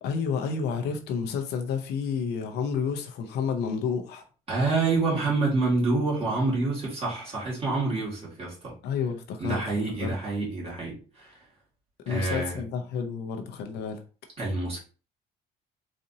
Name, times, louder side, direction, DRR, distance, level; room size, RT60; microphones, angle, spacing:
voice 1, 0.0-4.3 8.8-9.6 10.0-10.1 12.1-14.0, left 6 dB, 80° left, 0.7 m, -30 dB
voice 2, 4.5-8.7 9.4-11.4 12.1-12.6 14.4-14.8, right 3 dB, 35° right, 2.0 m, -27 dB
4.1 x 2.6 x 2.7 m
cardioid pair, 110°, 17 cm